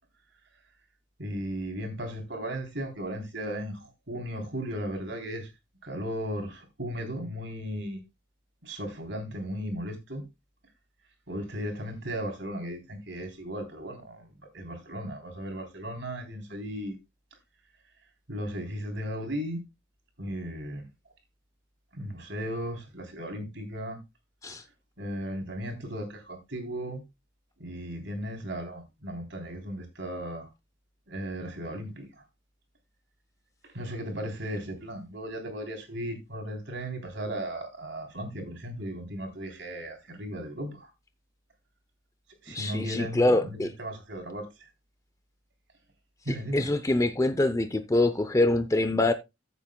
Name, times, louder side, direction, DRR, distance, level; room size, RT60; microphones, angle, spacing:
voice 1, 1.2-5.5 5.8-8.0 8.6-10.2 11.3-14.3 14.5-17.0 18.3-19.6 20.2-20.8 21.9-24.0 25.0-27.0 27.6-30.5 31.1-32.1 33.7-40.9 42.4-44.5 46.3-46.7, equal, 65° right, 3.4 m, -36 dB
voice 2, 42.5-43.7 46.3-49.1, left 2 dB, 15° left, 0.6 m, -25 dB
14.5 x 8.0 x 2.2 m
head